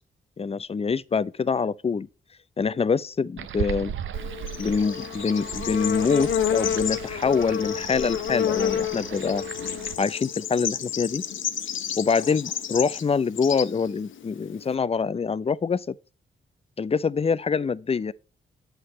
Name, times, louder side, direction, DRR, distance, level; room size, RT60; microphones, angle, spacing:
voice 1, 0.4-2.1 2.6-3.9 4.6-9.4 10.0-11.2 12.0-15.9 16.8-18.1, left 5 dB, 30° left, 0.5 m, -25 dB
sound 1, 3.4-10.0, right 9 dB, 70° right, 0.7 m, -37 dB
Bird / Insect, 4.1-14.7, left 9 dB, 70° left, 0.7 m, -30 dB
8.1 x 5.9 x 4.1 m
supercardioid pair, 50°, 21 cm